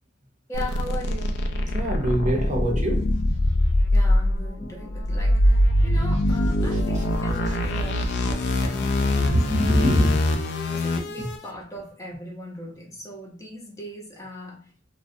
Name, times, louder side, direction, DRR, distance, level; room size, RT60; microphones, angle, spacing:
sound 1, 0.5-11.4, left 1 dB, 65° left, 0.4 m, -23 dB
voice 1, 0.5-1.4 3.9-10.2 10.7-14.9, left 1 dB, 15° left, 0.6 m, -39 dB
voice 2, 1.7-3.1 7.5-7.6 9.2-10.1, equal, 40° right, 0.6 m, -23 dB
2.4 x 2.1 x 2.5 m
head